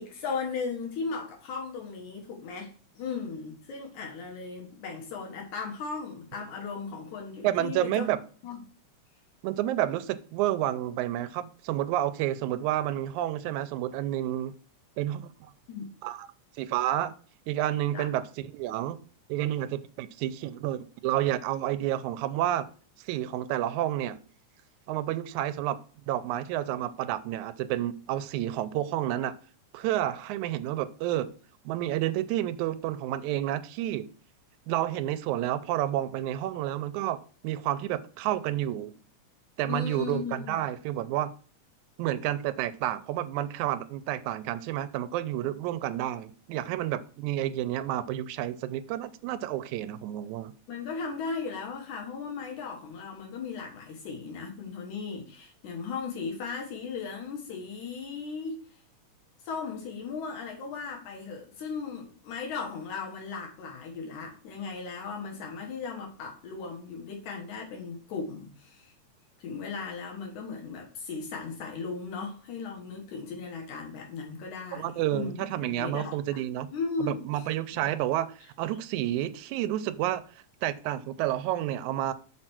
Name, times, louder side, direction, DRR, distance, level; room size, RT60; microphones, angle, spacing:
voice 1, 0.0-8.1 8.4-8.6 15.7-15.9 17.9-18.1 39.7-40.6 50.7-58.6 59.4-68.9 69.4-76.4 76.7-77.4 77.7-77.9, left 5 dB, 85° left, 2.9 m, -37 dB
voice 2, 7.4-8.2 9.4-14.6 15.0-15.5 16.0-16.3 16.6-17.1 17.5-19.0 19.3-22.7 23.0-24.2 24.9-25.8 26.1-29.4 29.7-31.3 31.7-34.1 34.7-38.9 39.6-41.3 42.0-50.5 74.7-76.7 77.0-80.2 80.6-82.1, right 13 dB, 85° right, 2.0 m, -30 dB
6.2 x 4.4 x 6.1 m
omnidirectional pair, 3.4 m